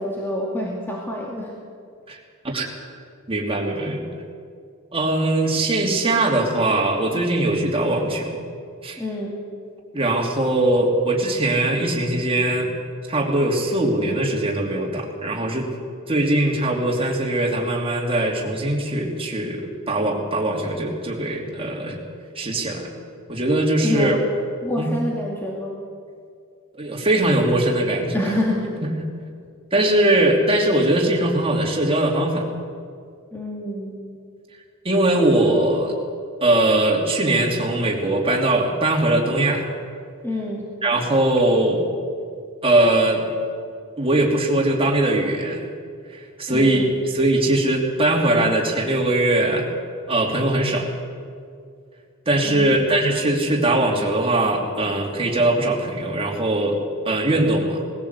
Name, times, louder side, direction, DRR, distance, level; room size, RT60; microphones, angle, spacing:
voice 1, 0.0-1.6 9.0-9.4 23.8-24.2 24.6-25.8 28.1-28.8 33.3-34.0 40.2-40.7 46.5-46.9 52.4-52.8, left 1 dB, 10° left, -3 dB, 2.4 m, -27 dB
voice 2, 3.3-4.1 4.9-8.5 8.8-9.0 9.9-12.7 13.1-15.7 16.1-22.0 22.3-22.9 23.3-24.2 24.8-24.9 26.7-28.3 29.7-32.5 34.8-35.9 36.4-39.7 40.8-41.8 42.6-43.3 44.0-45.7 46.1-49.7 50.1-50.9 52.3-56.8 57.0-57.8, right 1 dB, 25° right, 0 dB, 3.0 m, -21 dB
20.0 x 16.0 x 8.3 m, 2.2 s
head